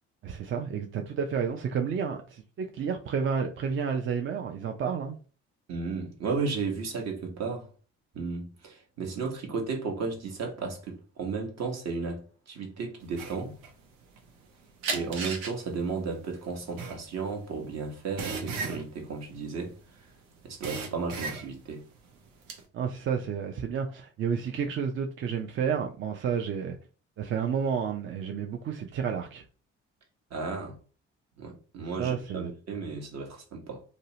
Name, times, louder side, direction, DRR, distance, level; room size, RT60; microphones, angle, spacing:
voice 1, 0.2-5.2 22.7-26.8 27.2-29.4 32.0-32.5, right 6 dB, 40° right, 0.4 m, -31 dB
voice 2, 5.7-7.7 8.1-13.5 14.9-19.7 20.4-21.8 30.3-30.7 31.4-33.8, right 4 dB, 55° right, 0.9 m, -34 dB
sound 1, 13.1-14.5 14.8-20.1 20.4-21.7 22.1-22.6, right 4 dB, 85° right, 0.6 m, -35 dB
2.7 x 2.0 x 2.7 m
supercardioid pair, 60°, 31 cm